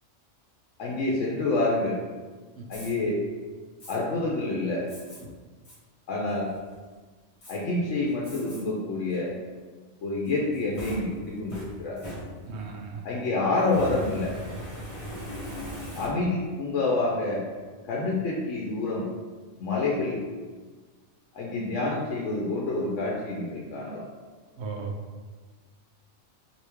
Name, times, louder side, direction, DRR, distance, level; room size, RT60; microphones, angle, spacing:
voice 1, 0.8-2.0 2.7-3.2 3.9-4.9 6.1-6.5 7.5-9.3 10.0-12.0 13.0-14.4 16.0-17.4 17.8-19.1 19.6-20.2 21.3-24.1, left 2 dB, 80° left, -3 dB, 1.0 m, -27 dB
Fire, 2.7-2.9 3.8-4.0 4.9-5.2 5.6-5.8 6.3-6.7 7.4-7.6 8.2-8.6 9.1-9.2 10.3-12.7 13.6-16.5, equal, 30° left, 0.8 m, -39 dB
voice 2, 12.5-13.1 24.6-24.9, right 5 dB, 65° right, 1 dB, 0.9 m, -36 dB
3.4 x 2.8 x 4.5 m, 1.4 s
omnidirectional pair, 1.3 m